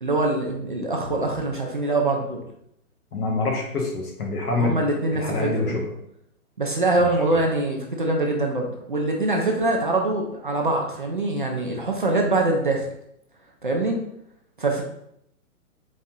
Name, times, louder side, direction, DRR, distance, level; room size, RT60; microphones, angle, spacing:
voice 1, 0.0-2.4 4.6-5.8 6.6-12.8 13.6-14.0 14.6-14.8, right 2 dB, 35° right, 0 dB, 0.4 m, -24 dB
voice 2, 3.1-4.8 5.1-5.8 7.0-7.1, left 3 dB, 80° left, -1 dB, 1.6 m, -26 dB
4.1 x 2.8 x 3.6 m, 0.75 s
hypercardioid pair, 170°, 45 cm